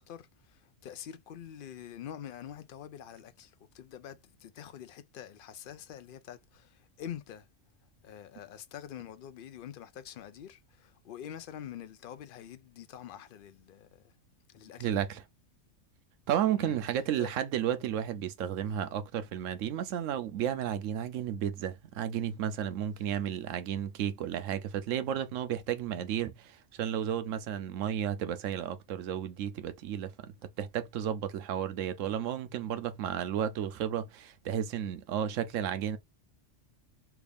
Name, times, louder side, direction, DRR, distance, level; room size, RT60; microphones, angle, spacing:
voice 1, 0.0-7.5 8.0-14.1 14.5-15.0 16.6-16.8 17.2-17.3, left 10 dB, 60° left, 0.6 m, -46 dB
voice 2, 14.8-15.2 16.3-30.1 30.6-36.0, right 10 dB, 90° right, 1.0 m, -33 dB
3.5 x 2.4 x 3.3 m
omnidirectional pair, 1.3 m